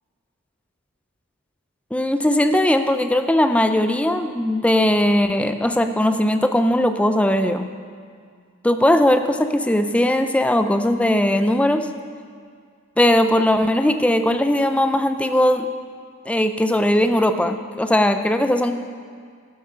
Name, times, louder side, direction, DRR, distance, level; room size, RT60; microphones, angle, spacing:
voice 1, 1.9-7.7 8.6-11.9 13.0-15.7 16.3-18.7, left 1 dB, 5° left, 8 dB, 0.4 m, -19 dB
12.5 x 10.5 x 5.6 m, 2.1 s
head